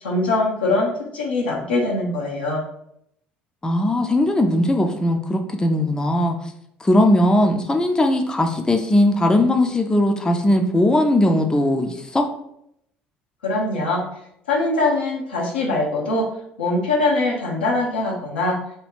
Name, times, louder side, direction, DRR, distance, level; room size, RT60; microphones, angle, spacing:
voice 1, 0.0-2.6 13.4-14.0 14.5-16.3 16.6-18.5, left 2 dB, 85° left, -2 dB, 0.7 m, -22 dB
voice 2, 3.6-6.4 6.8-12.2, left 1 dB, 15° left, 4 dB, 0.4 m, -19 dB
2.7 x 2.2 x 3.5 m, 0.76 s
hypercardioid pair, 60°, 5 cm